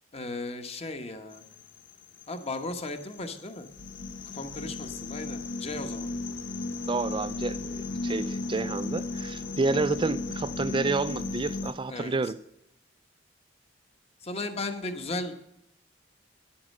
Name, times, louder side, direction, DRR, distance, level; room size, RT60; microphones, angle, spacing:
voice 1, 0.1-1.4 2.3-3.7 4.3-6.1 11.9-12.3 14.2-15.4, left 2 dB, 35° left, 1.1 m, -36 dB
sound 1, 1.3-11.7, left 2 dB, 85° left, 0.9 m, -35 dB
voice 2, 6.9-7.6 8.0-12.4, right 3 dB, 25° right, 0.4 m, -29 dB
10.0 x 8.6 x 6.5 m
head